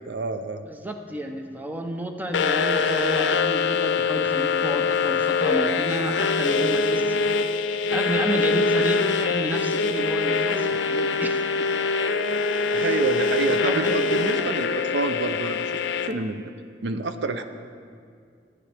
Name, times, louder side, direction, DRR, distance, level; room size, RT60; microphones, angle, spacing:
voice 1, 0.0-0.6 12.7-15.7 16.1-16.5 16.8-17.4, right 3 dB, 65° right, 8 dB, 0.5 m, -28 dB
voice 2, 0.7-7.3 7.9-11.7 12.3-12.5 12.8-12.9 13.5-14.1, right 1 dB, 10° right, 4 dB, 0.6 m, -31 dB
sound 1, 2.3-16.1, left 4 dB, 85° left, 0.5 m, -23 dB
15.5 x 9.7 x 3.4 m, 2.3 s
head